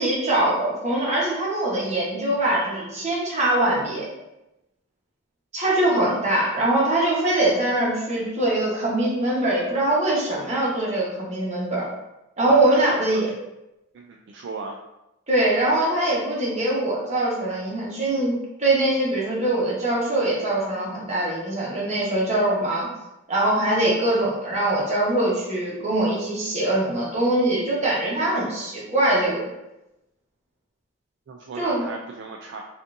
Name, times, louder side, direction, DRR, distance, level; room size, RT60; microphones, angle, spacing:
voice 1, 0.0-4.1 5.5-11.9 12.4-13.3 15.3-18.3 18.6-22.9 23.3-29.5 31.6-31.9, right 1 dB, 35° right, -5 dB, 1.1 m, -22 dB
voice 2, 12.5-13.2 13.9-14.8 31.3-32.6, right 4 dB, 55° right, 0 dB, 0.3 m, -36 dB
5.1 x 2.5 x 2.6 m, 0.94 s
head